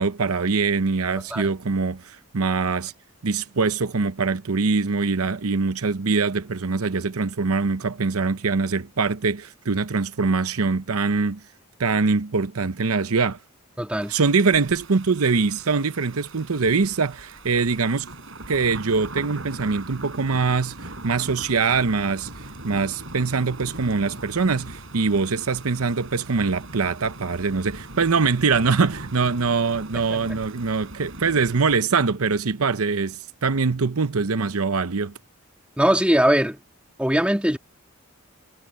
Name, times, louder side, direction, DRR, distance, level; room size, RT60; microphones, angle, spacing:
voice 1, 0.0-2.9 3.2-11.4 11.8-13.4 14.1-18.1 18.5-22.3 22.6-35.1, right 4 dB, 85° right, 0.8 m, -23 dB
voice 2, 13.8-14.1 29.9-30.4 35.8-36.6 37.0-37.6, equal, 5° right, 2.5 m, -21 dB
sound 1, 14.0-31.8, right 2 dB, 60° right, 7.9 m, -40 dB
head